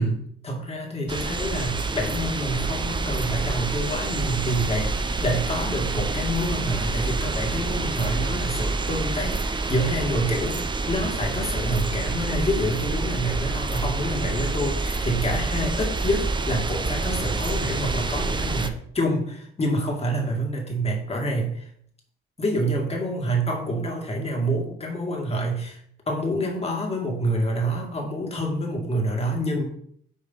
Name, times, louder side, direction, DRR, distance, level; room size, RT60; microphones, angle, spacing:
voice 1, 0.0-21.7 22.4-25.8 26.1-29.7, right 1 dB, 30° left, 1 dB, 2.4 m, -27 dB
sound 1, 1.1-18.7, right 3 dB, 25° right, 0.8 m, -27 dB
6.6 x 4.6 x 5.7 m, 0.66 s
cardioid pair, 90°, 20 cm